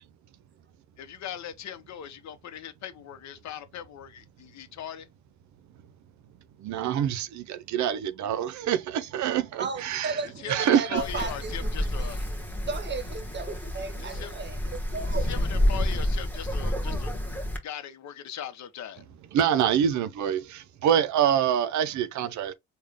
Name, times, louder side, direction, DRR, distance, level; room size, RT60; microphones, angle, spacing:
voice 1, 1.0-5.1 10.4-12.2 14.0-14.3 15.3-17.1 17.6-19.0, left 9 dB, 65° left, 0.8 m, -39 dB
voice 2, 6.6-10.2 10.5-11.0 19.0-19.1 19.3-22.5, right 9 dB, 70° right, 0.6 m, -26 dB
voice 3, 9.6-15.4, right 5 dB, 35° right, 0.8 m, -35 dB
Wind, 11.0-17.6, left 1 dB, 5° left, 1.2 m, -29 dB
3.7 x 2.3 x 3.4 m
cardioid pair, 90°, 30 cm